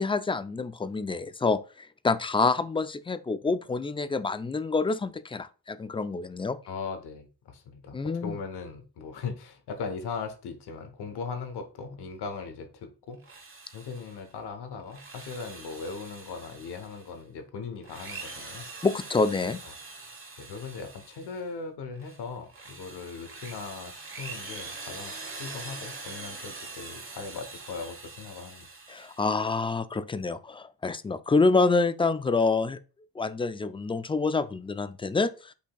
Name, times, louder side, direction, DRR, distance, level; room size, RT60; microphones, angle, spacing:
voice 1, 0.0-6.6 7.9-8.4 18.8-19.6 28.9-32.8 33.2-35.5, left 3 dB, 15° left, 0.3 m, -27 dB
voice 2, 6.7-13.2 13.7-18.7 19.6-19.7 20.0-20.1 20.4-28.7, left 5 dB, 90° left, 0.8 m, -39 dB
Drill, 13.1-14.3 14.8-17.2 17.8-21.5 22.0-29.4, right 3 dB, 35° right, 1.1 m, -43 dB
8.2 x 2.8 x 2.2 m
cardioid pair, 70°, 39 cm